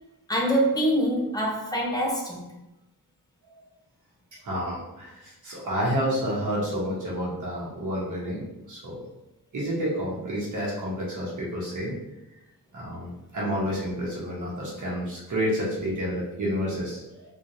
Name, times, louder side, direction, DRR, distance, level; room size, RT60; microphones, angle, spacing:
voice 1, 0.3-2.6, equal, 10° left, -2 dB, 0.7 m, -25 dB
voice 2, 4.4-9.0 9.5-11.9 12.7-17.2, equal, 55° right, -5 dB, 1.1 m, -29 dB
3.6 x 3.0 x 2.6 m, 0.95 s
wide cardioid pair, 160°, 36 cm